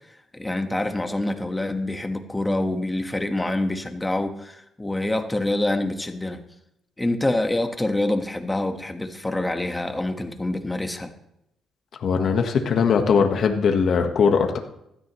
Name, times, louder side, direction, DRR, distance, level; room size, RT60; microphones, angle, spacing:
voice 1, 0.3-6.4 7.0-11.1, left 1 dB, 10° left, 6 dB, 1.4 m, -26 dB
voice 2, 12.0-14.6, left 6 dB, 60° left, 4 dB, 1.3 m, -20 dB
16.0 x 13.0 x 3.1 m, 0.81 s
cardioid pair, 90°, 0 cm